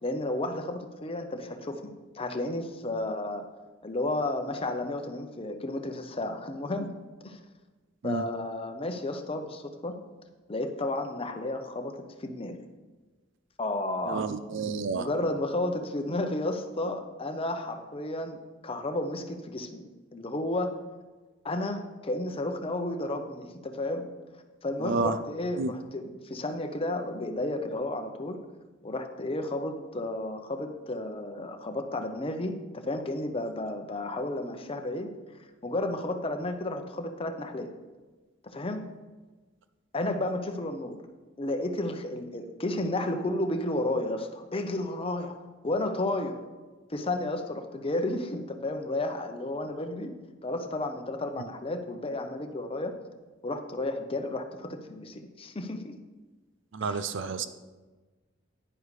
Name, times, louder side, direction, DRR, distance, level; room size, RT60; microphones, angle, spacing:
voice 1, 0.0-3.4 3.8-6.9 7.2-7.4 8.0-9.9 10.5-12.6 13.6-14.3 14.9-19.8 20.1-20.7 21.4-24.1 24.6-28.4 28.8-35.1 35.6-37.7 38.4-38.8 39.9-41.0 41.4-45.4 45.6-46.4 46.9-50.1 50.4-52.9 53.4-56.0 56.8-57.0, left 1 dB, 30° left, 6 dB, 0.8 m, -32 dB
voice 2, 14.1-15.1 24.8-25.2 25.6-25.7 56.7-57.5, right 4 dB, 65° right, 12 dB, 0.5 m, -30 dB
10.0 x 9.8 x 3.2 m, 1.3 s
head